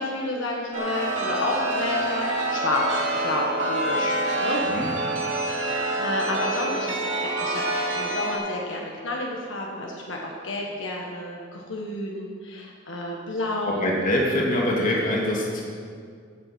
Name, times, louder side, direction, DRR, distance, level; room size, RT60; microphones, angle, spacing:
voice 1, 0.0-4.6 5.5-6.9 7.2-7.6 7.9-13.8, left 1 dB, 85° left, -1 dB, 1.6 m, -30 dB
Chime, 0.7-8.3, right 2 dB, 90° right, 2.4 m, -27 dB
voice 2, 13.6-15.6, left 1 dB, 45° left, -3 dB, 2.7 m, -24 dB
15.5 x 7.5 x 6.1 m, 2.1 s
head